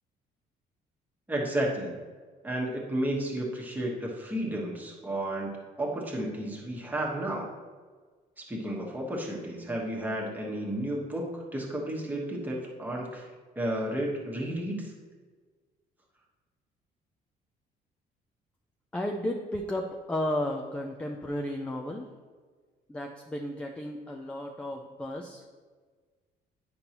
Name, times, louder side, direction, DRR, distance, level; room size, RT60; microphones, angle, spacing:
voice 1, 1.3-2.0 2.4-7.5 8.4-13.3 13.5-14.9, right 1 dB, 10° right, -2 dB, 1.2 m, -32 dB
voice 2, 18.9-22.1 22.9-25.4, left 1 dB, 5° left, 3 dB, 0.4 m, -33 dB
9.5 x 5.3 x 2.9 m, 1.5 s
cardioid pair, 160°, 17 cm